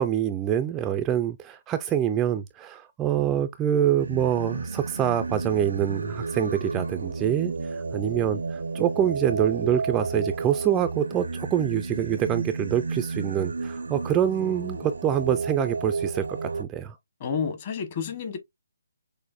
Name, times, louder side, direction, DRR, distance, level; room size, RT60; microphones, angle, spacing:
voice 1, 0.0-17.0, right 10 dB, 15° right, 0.3 m, -26 dB
Singing, 4.0-16.6, right 4 dB, 80° right, 0.5 m, -32 dB
voice 2, 17.2-18.4, left 6 dB, 35° left, 1.1 m, -30 dB
6.2 x 2.6 x 2.4 m
hypercardioid pair, 160°, 0 cm